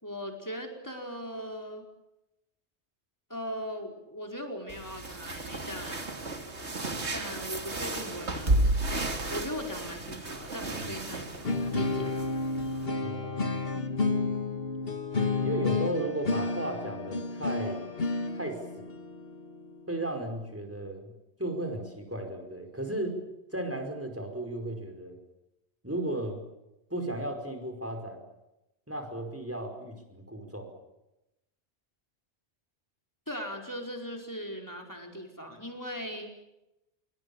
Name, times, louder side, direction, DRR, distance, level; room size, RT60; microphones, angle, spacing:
voice 1, 0.0-1.9 3.3-6.1 7.1-8.6 8.9-12.3 33.3-36.3, equal, 15° left, 2 dB, 4.9 m, -39 dB
sound 1, 4.7-12.9, right 2 dB, 75° right, 3.0 m, -33 dB
sound 2, 11.4-20.4, left 3 dB, 55° left, 2.1 m, -31 dB
voice 2, 13.0-13.6 15.4-17.9 18.3-18.9 19.9-21.1 21.4-23.2 23.5-25.2 25.8-26.4 26.9-28.2 28.9-30.7, right 1 dB, 10° right, 5 dB, 5.2 m, -35 dB
26.5 x 24.0 x 7.2 m, 0.93 s
omnidirectional pair, 1.2 m